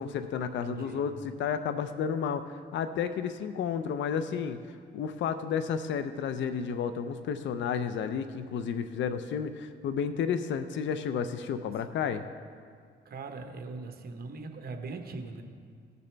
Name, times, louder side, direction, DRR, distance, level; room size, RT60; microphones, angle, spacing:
voice 1, 0.0-12.2, left 7 dB, 70° left, 10 dB, 0.5 m, -32 dB
voice 2, 0.6-1.1 13.0-15.4, right 3 dB, 50° right, 5 dB, 1.1 m, -40 dB
16.0 x 6.7 x 3.4 m, 2.1 s
cardioid pair, 90°, 20 cm